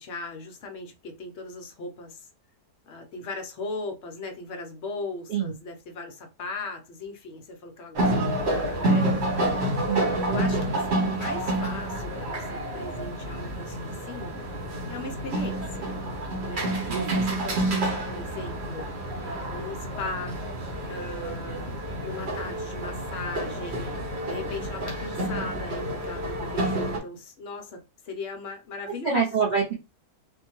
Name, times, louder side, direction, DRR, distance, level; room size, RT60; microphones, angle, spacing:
voice 1, 0.0-2.3 2.9-9.1 10.3-14.4 14.9-15.9 16.5-16.8 17.1-18.9 19.2-20.4 20.8-21.7 22.0-23.9 24.2-29.3, left 3 dB, 60° left, 0.7 m, -38 dB
sound 1, 7.9-27.0, right 1 dB, 50° right, 1.0 m, -29 dB
voice 2, 9.9-10.4 16.9-17.2 29.0-29.7, right 6 dB, 75° right, 0.4 m, -26 dB
3.4 x 2.1 x 3.0 m
omnidirectional pair, 1.6 m